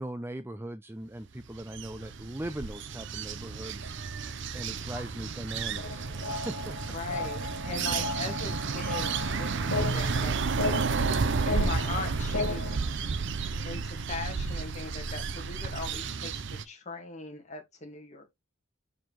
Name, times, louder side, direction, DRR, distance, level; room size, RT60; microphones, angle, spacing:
voice 1, 0.0-4.2 4.5-6.8 7.8-8.0, right 1 dB, 10° right, 0.4 m, -40 dB
sound 1, 1.4-16.6, right 4 dB, 60° right, 0.6 m, -32 dB
sound 2, 5.8-12.8, left 3 dB, 75° left, 1.3 m, -36 dB
voice 2, 6.9-10.3 11.5-12.8 13.6-18.3, left 3 dB, 35° left, 1.9 m, -39 dB
7.2 x 4.6 x 3.0 m
head